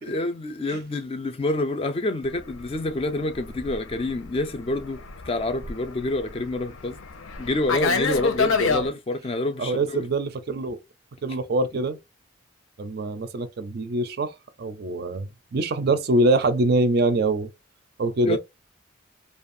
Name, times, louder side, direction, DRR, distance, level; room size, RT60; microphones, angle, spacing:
voice 1, 0.0-7.0 7.4-10.0 18.2-18.4, left 2 dB, 30° left, 0.3 m, -27 dB
Fixed-wing aircraft airplane, 2.4-8.9, left 4 dB, 85° left, 0.6 m, -28 dB
voice 2, 9.6-10.8 11.2-12.0 12.8-17.5 18.0-18.4, right 2 dB, 50° right, 0.4 m, -24 dB
2.5 x 2.3 x 2.5 m
head